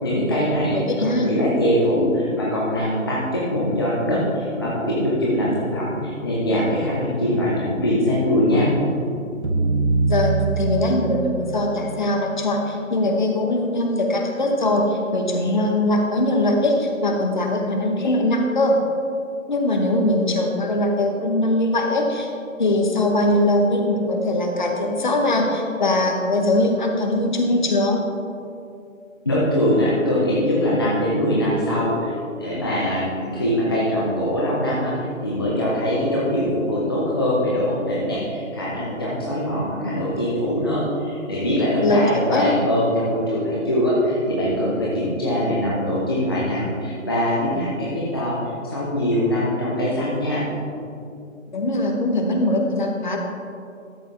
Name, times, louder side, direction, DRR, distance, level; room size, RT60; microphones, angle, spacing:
voice 1, 0.0-8.7 29.2-48.4 48.6-50.4, equal, 20° left, -7 dB, 0.7 m, -22 dB
voice 2, 0.9-1.3 10.1-18.8 19.5-22.3 22.6-28.0 41.8-42.5 51.5-53.2, left 1 dB, 35° left, 2 dB, 1.1 m, -21 dB
sound 1, 9.4-13.2, right 4 dB, 55° right, 1.2 m, -24 dB
12.5 x 7.7 x 3.4 m, 2.6 s
figure-of-eight pair, 150°, 40 cm